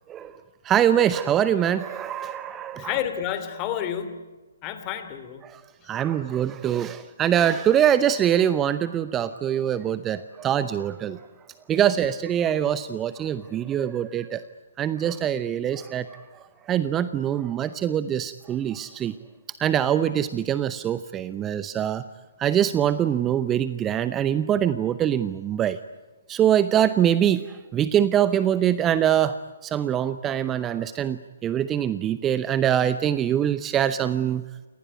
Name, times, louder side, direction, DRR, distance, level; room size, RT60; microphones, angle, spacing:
voice 1, 0.6-3.0 5.4-5.6 5.9-11.2 11.7-14.4 14.8-16.2 16.7-19.1 19.6-22.0 22.4-25.8 26.3-29.3 29.6-34.4, right 10 dB, 15° right, 14 dB, 0.7 m, -23 dB
voice 2, 2.7-4.3 4.6-5.4, left 10 dB, 25° left, 10 dB, 2.8 m, -30 dB
28.0 x 19.0 x 9.5 m, 1.2 s
figure-of-eight pair, 130°, 0 cm